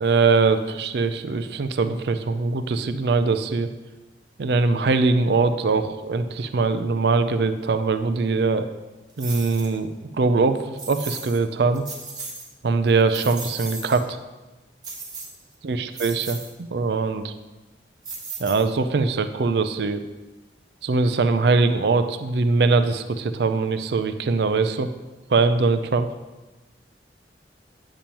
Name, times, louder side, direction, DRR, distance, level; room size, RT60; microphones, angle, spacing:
voice 1, 0.0-3.7 4.4-8.7 9.2-9.9 10.2-11.8 12.6-14.2 15.6-17.3 18.4-20.0 20.8-24.9 25.3-26.1, right 4 dB, 65° right, 10 dB, 0.4 m, -22 dB
sound 1, 9.2-9.7 10.8-11.4 11.7-12.5 12.9-14.0 14.8-15.5 15.9-16.5 18.0-18.9, right 3 dB, 25° right, 1.1 m, -36 dB
8.8 x 6.9 x 2.9 m, 1.1 s
head